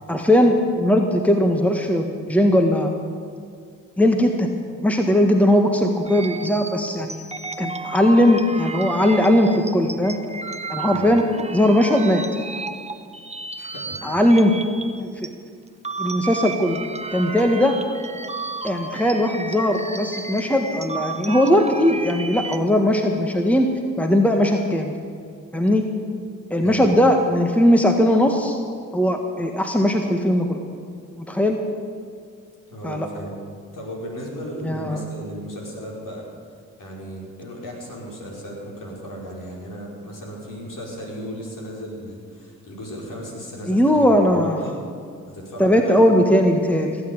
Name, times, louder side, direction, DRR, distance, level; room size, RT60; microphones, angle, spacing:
voice 1, 0.1-2.9 4.0-4.5 4.8-7.2 7.6-10.2 10.7-11.2 11.5-12.2 14.0-14.5 15.0-15.3 16.0-16.8 17.1-17.8 18.6-23.7 24.0-24.9 25.5-25.8 26.5-28.6 28.9-30.6 31.3-31.6 32.8-33.1 34.6-35.0 43.7-44.6 45.6-47.0, left 1 dB, 5° left, 4 dB, 1.6 m, -19 dB
sound 1, 6.1-15.3 15.7-22.6, right 3 dB, 15° right, 1.2 m, -33 dB
voice 2, 10.9-11.2 13.6-14.2 26.6-26.9 32.7-33.4 33.7-36.2 36.8-44.8 45.3-46.2, equal, 55° left, -3 dB, 5.1 m, -35 dB
16.5 x 8.9 x 8.7 m, 2.2 s
hypercardioid pair, 45°, 38 cm